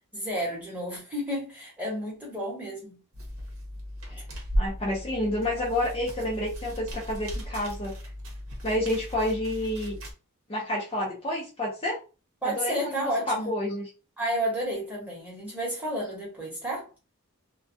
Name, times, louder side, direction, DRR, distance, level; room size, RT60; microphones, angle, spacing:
voice 1, 0.1-3.0 12.4-13.5 14.2-16.9, equal, 5° right, 0.9 m, -31 dB
sound 1, 3.1-10.1, equal, 65° right, 0.8 m, -35 dB
voice 2, 4.6-7.9 8.6-10.0 10.5-12.0 12.4-13.9, left 1 dB, 25° left, 0.5 m, -29 dB
2.2 x 2.2 x 2.6 m
head